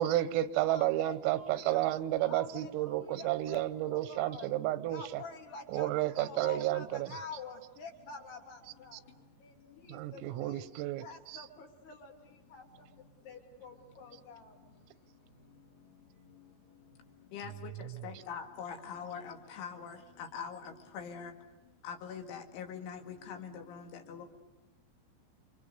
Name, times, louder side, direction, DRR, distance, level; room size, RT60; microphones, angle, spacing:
voice 1, 0.0-5.2 5.7-7.2 9.9-11.5 17.6-18.1, right 14 dB, 85° right, 14 dB, 3.6 m, -32 dB
voice 2, 0.7-1.9 2.3-4.5 4.8-9.1 9.4-10.7 11.0-12.9 13.2-14.6, left 4 dB, 55° left, 2 dB, 4.9 m, -48 dB
voice 3, 17.3-17.7 18.0-19.9 20.3-20.6 20.9-21.3 21.8-23.8 24.1-24.3, left 7 dB, 70° left, 4 dB, 4.5 m, -42 dB
29.0 x 25.5 x 6.8 m, 1.2 s
omnidirectional pair, 5.8 m